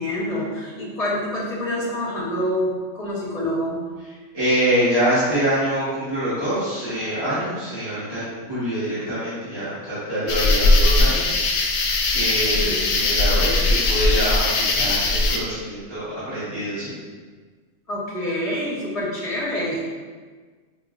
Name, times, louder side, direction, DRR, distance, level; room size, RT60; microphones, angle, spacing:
voice 1, 0.0-3.8 12.5-12.8 13.1-13.2 17.9-19.8, left 1 dB, 35° left, -6 dB, 0.8 m, -27 dB
voice 2, 4.3-11.3 12.1-16.9, equal, 20° right, -13 dB, 1.0 m, -25 dB
sound 1, 10.3-15.4, left 2 dB, 85° left, 1.0 m, -19 dB
5.1 x 2.5 x 2.4 m, 1.5 s
omnidirectional pair, 1.4 m